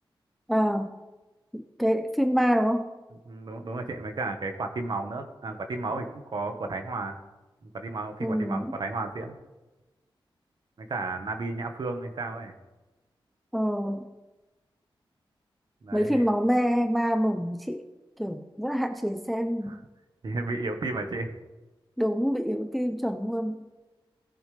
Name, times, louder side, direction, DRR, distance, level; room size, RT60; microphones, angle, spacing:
voice 1, 0.5-0.9 1.5-2.9 8.2-8.7 13.5-14.0 15.9-17.8 18.2-19.8 22.0-23.7, equal, ahead, 7 dB, 0.6 m, -26 dB
voice 2, 3.3-7.2 7.6-9.3 10.8-12.5 15.8-16.3 19.6-19.8 20.2-21.3, right 3 dB, 55° right, 6 dB, 1.3 m, -33 dB
19.0 x 7.3 x 3.3 m, 1.1 s
wide cardioid pair, 130°, 9 cm